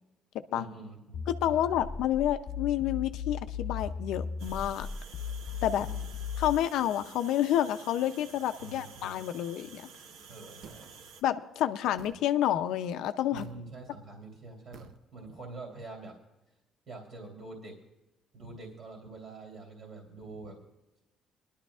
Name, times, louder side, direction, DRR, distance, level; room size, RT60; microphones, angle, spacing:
voice 1, 0.5-1.2 1.5-1.7 5.8-6.1 8.6-9.3 10.3-10.9 13.3-16.2 16.9-17.8 18.3-20.6, right 3 dB, 45° right, 0 dB, 2.9 m, -45 dB
sound 1, 1.1-6.6, left 6 dB, 45° left, 0.7 m, -37 dB
voice 2, 1.3-4.9 5.6-5.9 6.4-9.9 11.2-13.5, left 12 dB, 85° left, 8 dB, 0.5 m, -29 dB
sound 2, 4.4-11.2, right 6 dB, 90° right, 1.2 m, -51 dB
sound 3, 10.6-11.0 12.0-12.2 13.4-13.6 14.7-15.0, right 7 dB, 65° right, 0.7 m, -49 dB
21.5 x 12.0 x 2.4 m, 0.99 s
cardioid pair, 165°, 0 cm